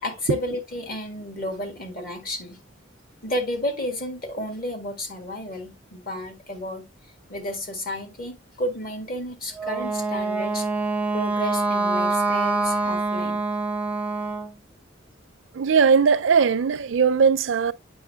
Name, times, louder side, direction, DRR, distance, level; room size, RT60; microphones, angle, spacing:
voice 1, 0.0-2.6 3.2-6.9 7.3-10.7 11.1-13.4, left 1 dB, 50° left, 1.8 m, -32 dB
Wind instrument woodwind instrument, 9.6-14.5, right 3 dB, 10° right, 0.5 m, -25 dB
voice 2, 15.5-17.7, right 6 dB, 85° right, 0.5 m, -19 dB
8.3 x 5.5 x 2.3 m
head